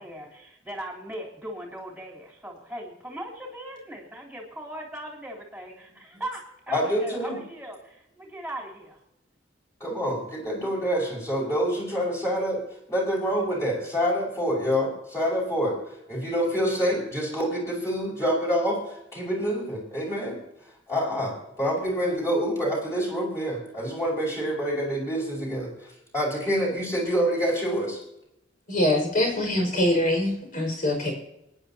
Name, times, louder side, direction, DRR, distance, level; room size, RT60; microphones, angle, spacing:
voice 1, 0.0-9.0, right 1 dB, 5° right, -3 dB, 3.5 m, -39 dB
voice 2, 6.7-7.4 9.8-12.6 12.9-15.8 16.1-20.4 20.9-28.0, equal, 15° left, -4 dB, 5.3 m, -27 dB
voice 3, 28.7-31.1, left 1 dB, 45° left, 1 dB, 5.6 m, -24 dB
25.5 x 10.5 x 2.9 m, 0.83 s
head